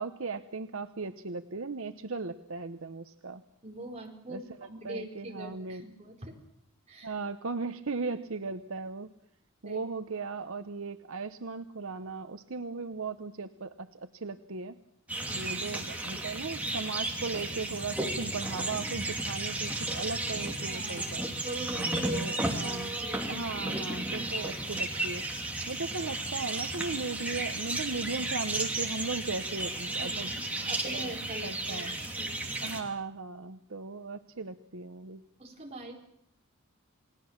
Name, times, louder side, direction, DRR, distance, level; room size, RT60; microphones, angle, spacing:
voice 1, 0.0-3.4 4.3-5.8 7.0-9.1 9.6-14.7 15.3-21.3 22.1-22.9 23.3-25.2 25.7-30.3 30.8-31.1 31.4-32.0 32.6-35.2, right 4 dB, 65° right, 10 dB, 0.8 m, -37 dB
voice 2, 3.6-6.4 6.9-7.1 9.6-9.8 15.2-15.5 16.2-16.3 20.7-23.4 25.7-25.8 29.9-32.5 35.4-35.9, right 1 dB, 30° right, 0 dB, 4.5 m, -43 dB
sound 1, 15.1-32.8, right 2 dB, 5° right, 2.8 m, -34 dB
29.0 x 19.5 x 7.3 m, 0.77 s
head